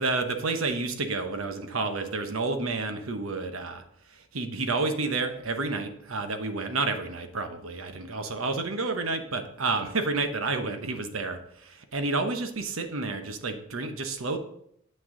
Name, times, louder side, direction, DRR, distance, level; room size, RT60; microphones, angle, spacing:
voice 1, 0.0-3.8 4.1-14.4, right 3 dB, 80° right, 7 dB, 1.0 m, -30 dB
7.7 x 6.2 x 3.8 m, 0.71 s
head